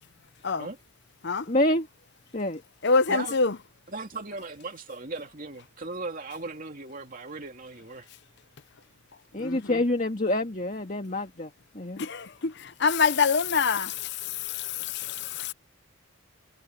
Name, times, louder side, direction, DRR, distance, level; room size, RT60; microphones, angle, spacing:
voice 1, 1.5-1.9 2.3-2.6 9.3-11.5 11.8-12.0, left 1 dB, 35° left, 1.9 m, -27 dB
voice 2, 2.8-3.6 9.4-9.8 12.0-15.5, left 5 dB, 50° left, 0.7 m, -26 dB
voice 3, 3.9-8.1, right 3 dB, 40° right, 2.8 m, -37 dB
head